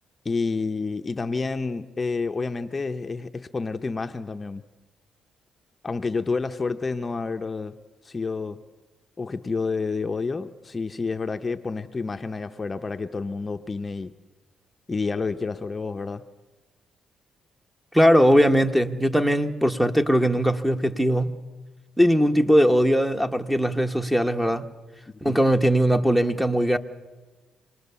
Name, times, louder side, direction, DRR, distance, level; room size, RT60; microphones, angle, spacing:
voice 1, 0.2-4.6 5.8-7.8 8.0-8.6 9.2-14.1 14.9-16.2 25.2-25.4, left 4 dB, 30° left, 0.7 m, -29 dB
voice 2, 17.9-21.4 22.0-24.7 25.2-26.8, equal, 5° right, 1.1 m, -20 dB
27.0 x 19.5 x 6.9 m
cardioid pair, 90°, 0 cm